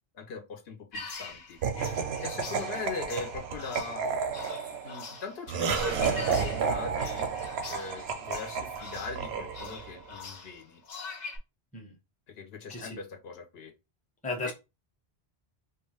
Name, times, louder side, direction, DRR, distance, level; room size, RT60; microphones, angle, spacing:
voice 1, 0.1-1.6 2.2-4.0 4.8-7.3 7.7-10.8 12.4-13.7 14.5-14.6, left 4 dB, 80° left, 0.9 m, -40 dB
sound 1, 0.9-11.4, left 4 dB, 50° left, 0.7 m, -43 dB
Laughter, 1.6-10.0, right 6 dB, 90° right, 0.8 m, -32 dB
voice 2, 12.7-13.0 14.2-14.5, left 2 dB, 10° left, 0.6 m, -35 dB
2.5 x 2.3 x 3.0 m
omnidirectional pair, 1.0 m